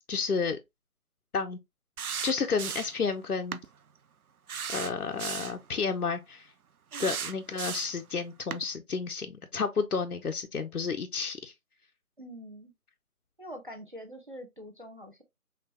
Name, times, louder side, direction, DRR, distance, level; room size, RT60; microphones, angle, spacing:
voice 1, 0.1-0.6 1.3-1.6 2.2-3.6 4.7-6.5 7.0-11.5, left 5 dB, 90° left, 0.7 m, -31 dB
sound 1, 2.0-3.0 3.5-3.7 4.5-5.6 6.9-8.0 8.5-8.6, right 7 dB, 80° right, 0.6 m, -36 dB
voice 2, 12.2-12.7 13.4-15.2, equal, 35° right, 0.6 m, -44 dB
5.8 x 2.3 x 2.8 m
figure-of-eight pair, 160°, 43 cm